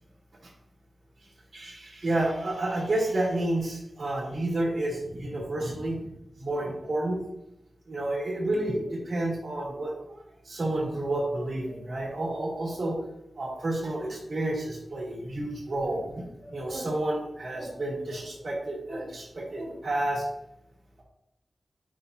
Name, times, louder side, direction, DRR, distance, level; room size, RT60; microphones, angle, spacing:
voice 1, 1.5-6.1 6.4-7.2 7.9-13.0 13.4-20.3, right 1 dB, 80° right, -5 dB, 2.8 m, -30 dB
9.9 x 5.4 x 2.7 m, 0.86 s
cardioid pair, 50°, 0 cm